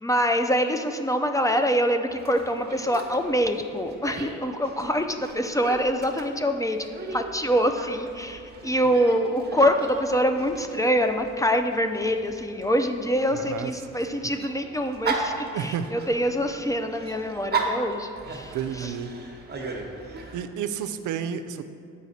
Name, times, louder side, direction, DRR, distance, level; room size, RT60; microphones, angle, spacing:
voice 1, 0.0-18.9, equal, 10° left, 6 dB, 0.4 m, -25 dB
Dog, 2.1-20.4, right 4 dB, 35° right, 1.0 m, -37 dB
voice 2, 13.3-13.7 14.0-14.1 15.5-15.9 18.5-19.1 20.3-21.6, right 8 dB, 80° right, 10 dB, 0.5 m, -31 dB
7.9 x 4.9 x 4.1 m, 2.5 s
cardioid pair, 90°, 30 cm